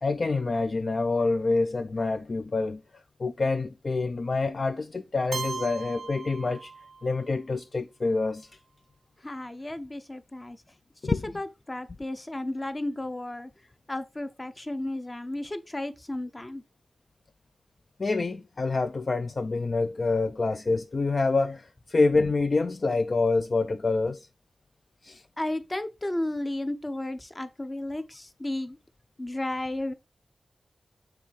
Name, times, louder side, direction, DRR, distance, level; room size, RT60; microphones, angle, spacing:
voice 1, 0.0-6.7 7.0-8.5 11.0-11.3 18.0-24.3 25.0-25.2, left 3 dB, 50° left, 0.4 m, -27 dB
Keyboard (musical), 5.3-7.2, right 5 dB, 80° right, 0.5 m, -37 dB
voice 2, 9.2-10.6 11.0-13.5 13.9-16.6 25.4-28.8 29.2-29.9, left 1 dB, 25° left, 0.7 m, -33 dB
6.0 x 3.8 x 4.3 m
wide cardioid pair, 90°, 0 cm